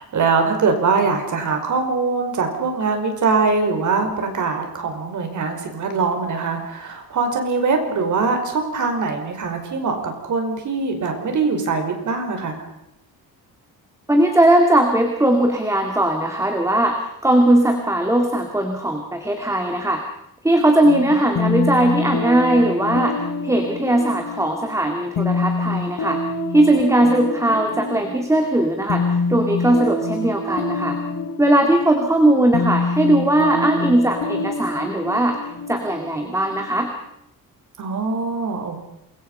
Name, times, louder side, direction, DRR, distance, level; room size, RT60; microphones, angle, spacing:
voice 1, 0.0-12.7 20.8-21.4 37.8-38.8, right 4 dB, 55° right, 5 dB, 5.3 m, -22 dB
voice 2, 14.1-20.0 20.4-26.2 26.5-31.0 31.4-35.4 35.7-36.9, right 1 dB, 10° right, 4 dB, 2.3 m, -19 dB
sound 1, 21.4-36.9, left 3 dB, 60° left, 3.4 m, -26 dB
28.0 x 23.0 x 5.6 m, 0.81 s
wide cardioid pair, 180°, 37 cm